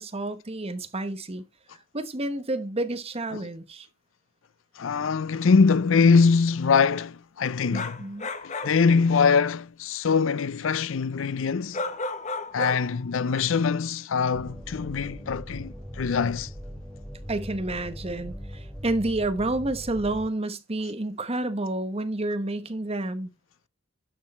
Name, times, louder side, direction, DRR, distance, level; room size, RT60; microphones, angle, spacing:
voice 1, 0.0-1.4 1.9-3.9 7.7-8.3 17.3-23.3, right 2 dB, 30° right, 1.1 m, -30 dB
voice 2, 4.8-8.0 8.4-11.8 12.5-16.5, left 5 dB, 70° left, 0.5 m, -23 dB
sound 1, 7.7-8.8 11.7-13.0 13.4-13.5, left 3 dB, 35° left, 1.3 m, -32 dB
sound 2, 14.3-20.3, equal, 5° left, 1.1 m, -40 dB
12.0 x 6.3 x 4.2 m
head